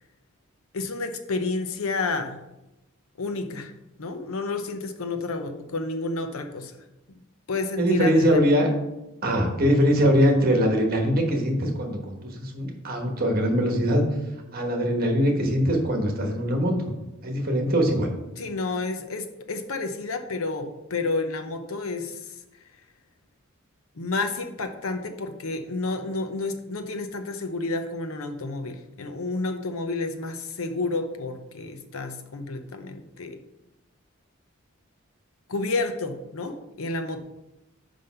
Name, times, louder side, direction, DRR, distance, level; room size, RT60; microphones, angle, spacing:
voice 1, 0.7-2.4 3.2-3.7 4.0-6.7 7.5-8.4 18.4-22.3 24.0-33.4 35.5-37.2, left 3 dB, 80° left, 7 dB, 0.8 m, -30 dB
voice 2, 7.8-8.7 9.2-14.0 14.5-16.9 17.2-18.1, equal, 45° right, 2 dB, 1.3 m, -22 dB
5.4 x 5.2 x 5.6 m, 0.94 s
head